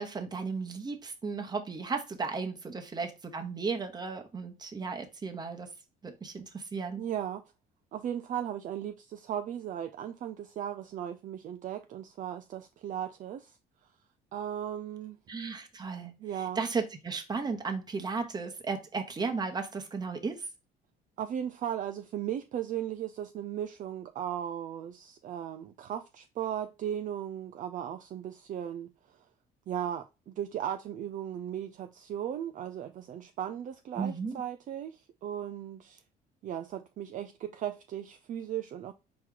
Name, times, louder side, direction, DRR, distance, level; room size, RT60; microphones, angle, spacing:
voice 1, 0.0-5.7 6.0-7.0 15.3-20.5 34.0-34.4, right 4 dB, 25° right, 1.1 m, -35 dB
voice 2, 7.0-7.4 7.9-13.6 14.3-15.2 16.0-16.6 21.2-29.2 29.7-36.0 36.4-38.9, right 10 dB, 50° right, 0.4 m, -37 dB
4.5 x 3.1 x 3.7 m
cardioid pair, 110°, 17 cm